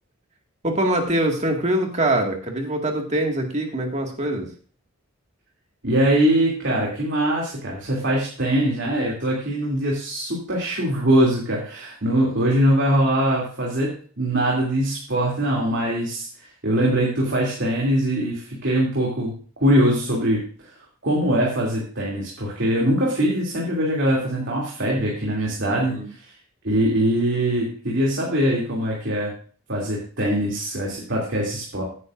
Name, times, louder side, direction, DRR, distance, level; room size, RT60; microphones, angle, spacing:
voice 1, 0.6-4.5 25.7-26.1, right 1 dB, 35° right, 2 dB, 2.0 m, -23 dB
voice 2, 5.8-16.3 16.6-19.3 19.6-20.7 21.0-26.3 26.6-29.3 29.7-31.8, right 1 dB, 60° right, -4 dB, 2.8 m, -22 dB
15.0 x 9.6 x 2.6 m, 0.43 s
head